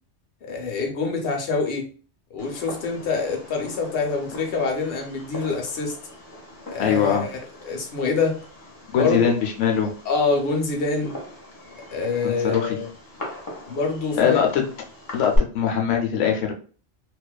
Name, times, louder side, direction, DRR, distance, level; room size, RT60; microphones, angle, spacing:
voice 1, 0.4-1.9 2.3-5.9 6.7-7.4 7.6-8.4 8.9-9.3 10.1-11.1 11.9-12.9 13.7-14.4, left 4 dB, 60° left, 2 dB, 0.8 m, -25 dB
Fireworks, 2.4-15.4, left 1 dB, 25° left, 0.5 m, -38 dB
voice 2, 6.8-7.2 8.9-9.9 12.2-12.8 14.2-14.6 15.1-16.5, left 8 dB, 90° left, 1 dB, 0.9 m, -22 dB
2.5 x 2.2 x 2.2 m, 0.39 s
omnidirectional pair, 1.2 m